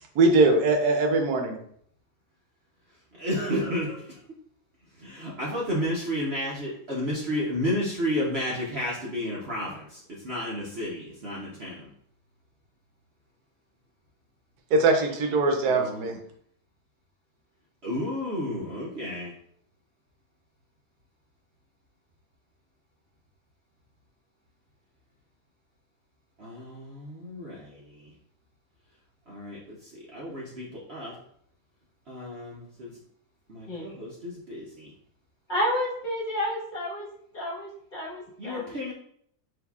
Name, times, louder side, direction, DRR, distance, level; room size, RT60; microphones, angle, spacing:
voice 1, 0.1-1.5 14.7-16.2, right 3 dB, 75° right, 3 dB, 1.2 m, -21 dB
voice 2, 3.2-4.0 5.0-11.9 15.6-16.2 17.8-19.3 26.4-28.1 29.3-31.2 32.1-32.9 33.5-34.9 38.4-38.9, equal, 50° right, -5 dB, 0.9 m, -32 dB
voice 3, 35.5-37.1 37.3-38.7, equal, 30° left, -4 dB, 1.4 m, -30 dB
6.1 x 2.9 x 2.3 m, 0.66 s
omnidirectional pair, 1.7 m